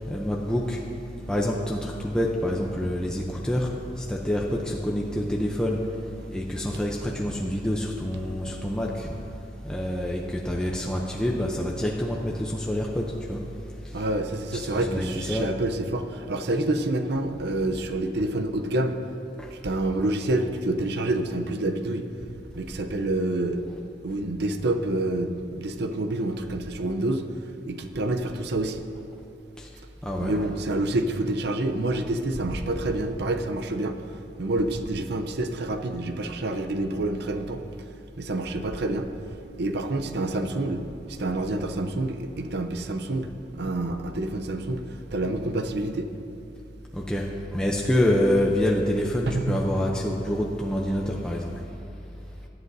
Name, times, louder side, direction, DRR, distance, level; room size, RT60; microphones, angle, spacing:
voice 1, 0.1-0.8 1.3-3.7 4.0-5.8 6.3-9.1 9.6-13.4 14.5-15.5 29.6-29.7 30.0-30.4 46.9-51.5, left 1 dB, 5° left, -2 dB, 0.6 m, -27 dB
voice 2, 13.9-19.0 19.5-22.1 22.6-23.6 24.0-27.2 27.7-28.8 30.2-34.0 34.4-37.6 38.2-39.1 39.6-43.3 43.5-44.8 45.1-46.1 49.3-49.6, right 2 dB, 65° right, 6 dB, 0.7 m, -27 dB
17.5 x 11.0 x 2.7 m, 2.7 s
head